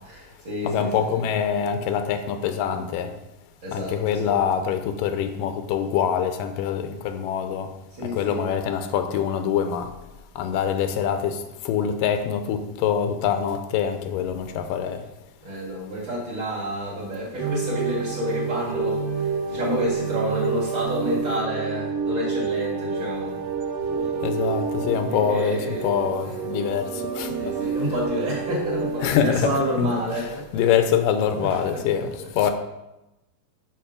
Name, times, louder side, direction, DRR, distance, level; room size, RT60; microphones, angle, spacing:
voice 1, 0.0-1.3 3.6-4.4 7.9-8.6 15.4-23.5 23.8-24.6 25.1-26.4 27.4-30.9 31.3-32.3, equal, 40° right, -6 dB, 2.0 m, -30 dB
voice 2, 0.7-3.1 3.7-7.7 8.0-9.9 10.4-15.0 24.2-27.6 29.0-29.5 29.8-30.3 30.5-32.5, left 8 dB, 85° left, 8 dB, 2.3 m, -25 dB
sound 1, 17.4-29.1, right 6 dB, 90° right, 2.5 m, -28 dB
7.0 x 6.0 x 4.9 m, 0.95 s
omnidirectional pair, 3.9 m